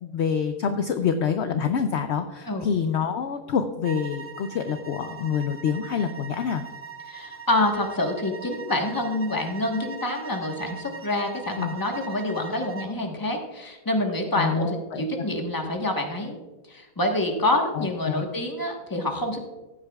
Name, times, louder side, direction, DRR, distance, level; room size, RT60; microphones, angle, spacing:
voice 1, 0.0-6.6 11.6-11.7 14.4-15.0 17.7-18.2, left 7 dB, 65° left, 8 dB, 0.7 m, -26 dB
sound 1, 3.8-13.0, right 6 dB, 20° right, 0.3 m, -41 dB
voice 2, 7.1-16.4 16.7-19.4, left 1 dB, 15° left, 2 dB, 1.1 m, -27 dB
15.5 x 8.6 x 2.3 m, 1.2 s
omnidirectional pair, 1.7 m